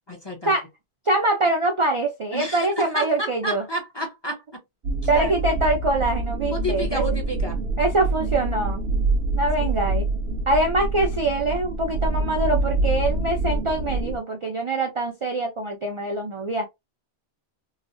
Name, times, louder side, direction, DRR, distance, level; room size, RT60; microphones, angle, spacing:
voice 1, 0.1-0.5 2.3-4.6 5.1-5.3 6.5-7.6 9.6-10.0, equal, 30° left, 0.6 m, -31 dB
voice 2, 1.1-3.6 5.1-7.0 7.8-8.8 9.3-10.1 10.5-16.7, right 2 dB, 45° right, 0.4 m, -24 dB
sound 1, 4.8-14.2, right 2 dB, 70° right, 0.8 m, -26 dB
3.0 x 2.0 x 2.5 m
omnidirectional pair, 1.1 m